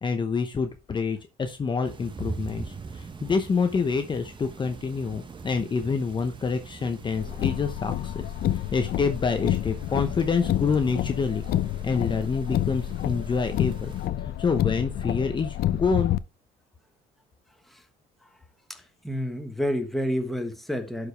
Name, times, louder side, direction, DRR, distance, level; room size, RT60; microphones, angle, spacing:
voice 1, 0.0-11.4 11.8-13.9 14.2-16.2, left 5 dB, 30° left, 0.8 m, -27 dB
sound 1, 1.8-14.1, right 4 dB, 30° right, 1.1 m, -43 dB
Car, 7.2-16.2, left 13 dB, 65° left, 0.5 m, -29 dB
voice 2, 18.7-21.1, equal, ahead, 1.4 m, -29 dB
11.5 x 5.0 x 3.4 m
cardioid pair, 110°, 17 cm